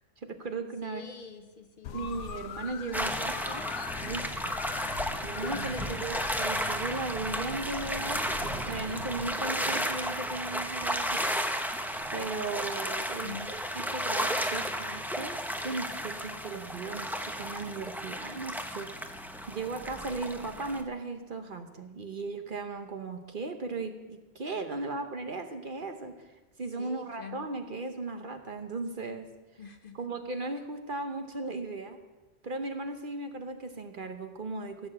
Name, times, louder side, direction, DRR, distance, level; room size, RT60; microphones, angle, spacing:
voice 1, 0.2-1.0 1.9-3.7 4.0-4.6 5.2-11.4 12.1-13.6 13.9-19.2 19.5-26.3 26.6-29.3 29.9-32.0 32.4-34.9, right 3 dB, 45° right, 6 dB, 1.0 m, -37 dB
voice 2, 0.8-2.1 2.9-3.7 5.5-6.0 13.2-13.6 24.7-25.0 26.8-27.5 29.6-30.1, left 5 dB, 50° left, 7 dB, 1.0 m, -46 dB
sound 1, 1.8-9.3, left 9 dB, 80° left, 1.0 m, -42 dB
sound 2, 2.9-20.8, equal, ahead, 0.6 m, -33 dB
sound 3, 4.5-13.6, right 7 dB, 80° right, 1.1 m, -49 dB
15.5 x 6.8 x 7.5 m, 1.2 s
omnidirectional pair, 1.2 m